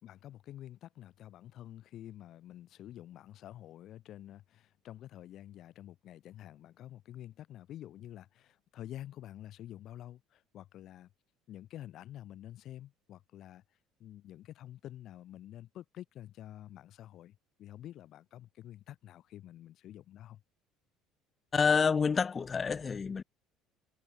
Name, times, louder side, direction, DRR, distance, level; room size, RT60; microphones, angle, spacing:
voice 1, 0.0-11.1 11.5-13.6 14.0-20.4, left 12 dB, 60° left, 2.4 m, -49 dB
voice 2, 21.5-23.2, left 5 dB, 35° left, 2.3 m, -28 dB
hypercardioid pair, 65°, 0 cm